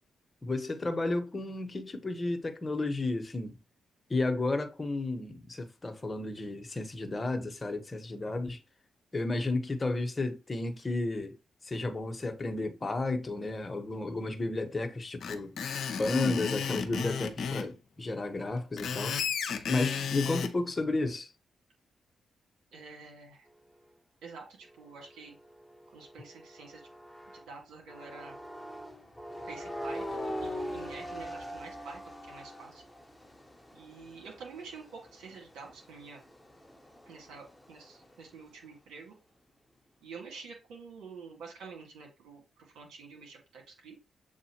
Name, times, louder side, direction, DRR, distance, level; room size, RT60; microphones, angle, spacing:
voice 1, 0.4-3.6 4.1-8.6 9.1-11.4 11.6-15.6 16.0-19.2 19.6-21.3, left 2 dB, 35° left, 1.1 m, -32 dB
Screech, 15.2-17.7 18.6-20.5, left 6 dB, 70° left, 0.6 m, -33 dB
voice 2, 22.7-23.5 24.2-25.4 25.9-26.9 27.3-28.4 29.5-32.8 33.7-36.2 37.1-39.1 40.0-44.0, right 4 dB, 80° right, 1.9 m, -48 dB
sound 1, 24.6-27.5 27.9-38.3, equal, 10° left, 1.0 m, -43 dB
7.2 x 2.4 x 2.9 m
hypercardioid pair, 45°, 0 cm